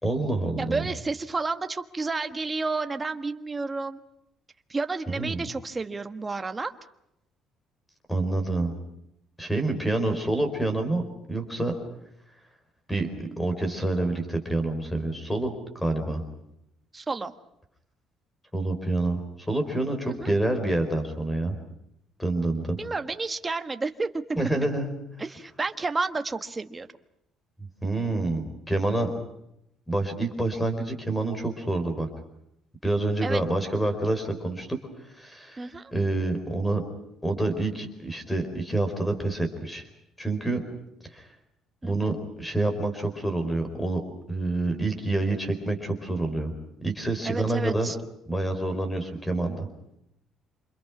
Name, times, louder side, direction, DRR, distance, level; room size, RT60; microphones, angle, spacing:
voice 1, 0.0-0.9 5.1-5.4 8.1-8.7 9.4-11.0 11.3-11.7 12.9-16.2 18.5-19.2 19.5-21.6 22.2-22.8 24.4-24.9 27.6-29.1 29.9-32.1 32.8-34.8 35.2-36.8 37.2-39.9 40.2-40.6 41.1-41.2 41.8-44.0 44.3-46.5 46.8-47.9 48.3-49.7, right 2 dB, 5° left, 7 dB, 4.8 m, -27 dB
voice 2, 0.6-4.0 4.7-6.7 16.9-17.3 20.1-20.3 22.8-24.2 25.2-26.9 33.2-33.4 35.6-35.9 41.8-42.1 47.2-48.0, right 3 dB, 15° right, 8 dB, 1.4 m, -31 dB
28.5 x 27.5 x 6.1 m, 0.80 s
cardioid pair, 165°, 0 cm